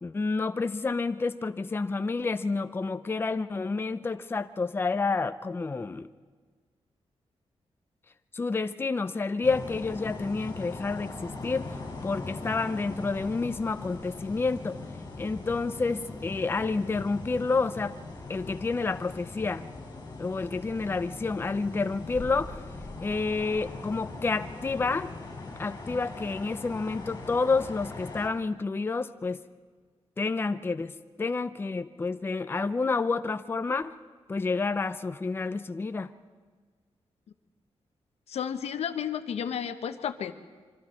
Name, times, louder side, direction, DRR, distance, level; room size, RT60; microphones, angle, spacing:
voice 1, 0.0-6.1 8.3-11.7 12.0-14.8 15.2-18.0 18.3-19.6 20.2-22.6 23.0-25.1 25.6-29.4 30.2-30.9 31.2-34.0 34.3-36.1, left 4 dB, 20° left, 10 dB, 0.5 m, -29 dB
sound 1, 9.4-28.3, left 3 dB, 40° left, 5.3 m, -40 dB
voice 2, 38.3-40.3, left 8 dB, 85° left, 9 dB, 1.0 m, -32 dB
26.0 x 24.5 x 4.4 m, 1.5 s
wide cardioid pair, 150°, 10 cm